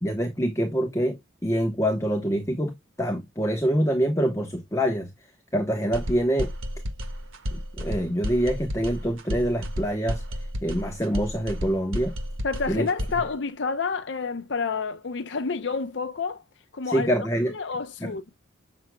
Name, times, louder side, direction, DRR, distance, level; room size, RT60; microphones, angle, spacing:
voice 1, 0.0-5.1 5.5-6.5 7.5-10.2 10.6-12.1 12.7-12.9 16.8-17.5 18.0-18.1, equal, 15° left, 1.0 m, -25 dB
sound 1, 5.9-13.3, equal, 90° right, 1.4 m, -32 dB
voice 2, 12.4-16.4 16.7-17.1 17.5-18.2, left 4 dB, 60° left, 0.5 m, -29 dB
7.6 x 6.1 x 2.2 m
head